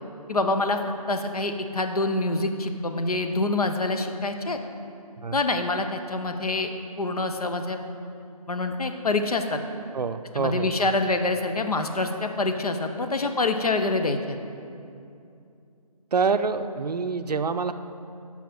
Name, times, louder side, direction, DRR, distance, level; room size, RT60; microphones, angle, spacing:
voice 1, 0.3-0.8 1.1-4.6 5.3-6.7 7.0-7.8 8.5-9.6 10.4-14.4, left 2 dB, 70° left, 6 dB, 0.8 m, -26 dB
voice 2, 9.9-10.9 16.1-17.7, right 5 dB, 85° right, 10 dB, 0.5 m, -26 dB
7.1 x 5.7 x 6.0 m, 2.6 s
figure-of-eight pair, 180°, 20 cm